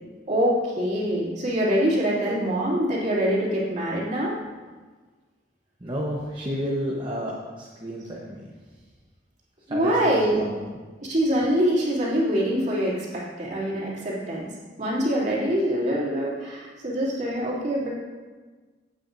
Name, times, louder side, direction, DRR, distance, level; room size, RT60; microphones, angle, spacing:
voice 1, 0.3-4.3 9.7-10.4 11.0-14.5 14.8-17.9, equal, 45° right, -6 dB, 2.9 m, -24 dB
voice 2, 5.8-8.4 9.7-10.6, equal, 25° right, -4 dB, 1.1 m, -31 dB
15.5 x 8.7 x 2.7 m, 1.4 s
head